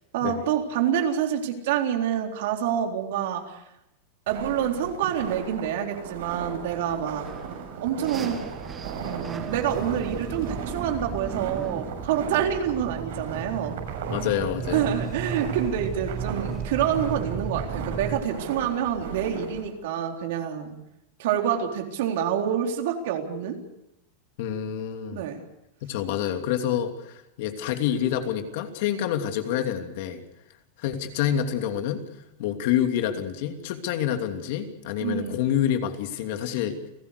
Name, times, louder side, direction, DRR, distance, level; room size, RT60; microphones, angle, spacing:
voice 1, 0.1-3.6 4.3-7.3 7.8-8.4 9.0-13.8 14.7-20.8 21.2-23.6 25.1-25.4 35.0-35.4, right 9 dB, 65° right, 3 dB, 3.9 m, -27 dB
sound 1, 4.3-19.7, right 6 dB, 80° right, 7.3 m, -37 dB
sound 2, 7.2-18.2, right 6 dB, 15° right, 1.8 m, -35 dB
voice 2, 14.1-14.8 24.4-25.2 25.8-30.2 30.8-32.0 32.4-36.8, left 10 dB, 55° left, 6 dB, 2.8 m, -27 dB
30.0 x 17.0 x 6.7 m, 0.89 s
supercardioid pair, 165°, 0 cm